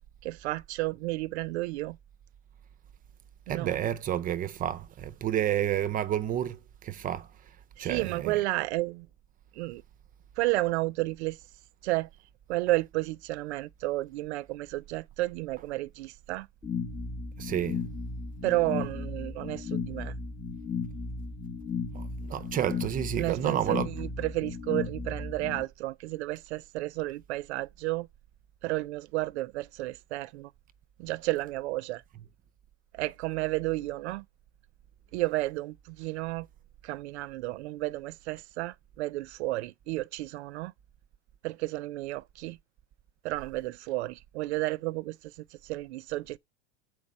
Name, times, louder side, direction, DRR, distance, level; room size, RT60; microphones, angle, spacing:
voice 1, 0.2-2.0 3.5-3.8 7.8-9.1 9.5-9.8 10.4-11.4 11.8-12.1 12.5-16.5 18.4-20.1 23.2-28.1 28.6-30.5 31.0-32.0 32.9-34.2 35.1-36.5 36.8-40.7 41.4-42.6 43.2-46.4, right 19 dB, 85° right, 0.5 m, -32 dB
voice 2, 3.5-8.4 17.4-17.8 21.9-23.9, right 10 dB, 25° right, 0.5 m, -30 dB
sound 1, 16.6-25.6, left 5 dB, 10° left, 0.9 m, -35 dB
7.3 x 4.7 x 5.2 m
supercardioid pair, 130°, 32 cm